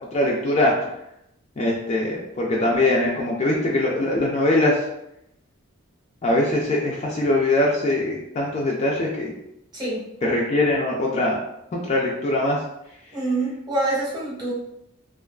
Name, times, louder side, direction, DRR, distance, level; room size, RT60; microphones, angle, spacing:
voice 1, 0.1-0.7 1.6-4.8 6.2-9.3 10.3-11.4 11.7-12.6, left 1 dB, 30° left, -3 dB, 0.3 m, -22 dB
voice 2, 9.7-10.1 13.1-14.5, right 2 dB, 20° right, -5 dB, 0.7 m, -26 dB
2.4 x 2.3 x 2.2 m, 0.81 s
head